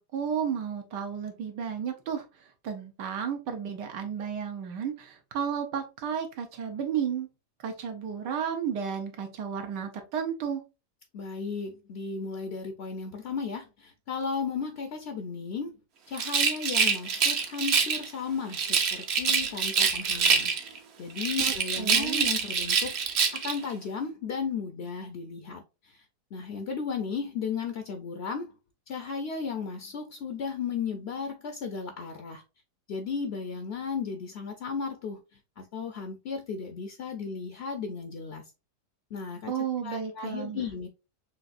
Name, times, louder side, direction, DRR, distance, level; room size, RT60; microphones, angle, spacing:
voice 1, 0.0-2.2 2.6-7.3 7.6-10.6 21.4-22.2 39.5-40.6, right 7 dB, 90° right, 1.5 m, -33 dB
voice 2, 11.1-15.8 16.1-23.0 23.3-26.0 26.3-28.5 28.9-32.4 32.9-35.2 35.6-38.4 39.1-39.5 39.8-40.9, left 5 dB, 70° left, 0.6 m, -35 dB
Rattle, 16.1-18.1 18.5-20.8 21.2-23.6, right 6 dB, 60° right, 0.7 m, -25 dB
6.2 x 2.6 x 2.5 m
omnidirectional pair, 1.8 m